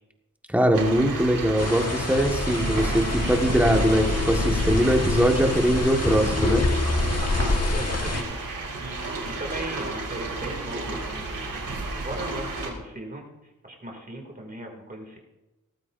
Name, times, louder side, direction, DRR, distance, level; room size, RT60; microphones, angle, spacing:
voice 1, 0.5-6.7, equal, 5° right, 2 dB, 1.7 m, -22 dB
sound 1, 0.7-12.7, right 2 dB, 90° right, 3.9 m, -32 dB
sound 2, 1.6-8.2, left 2 dB, 50° left, 1.6 m, -27 dB
voice 2, 7.2-9.0 9.2-11.7 12.0-13.2 13.6-15.2, right 1 dB, 25° right, 1 dB, 2.7 m, -37 dB
18.0 x 14.5 x 2.7 m, 1.0 s
wide cardioid pair, 130°, 33 cm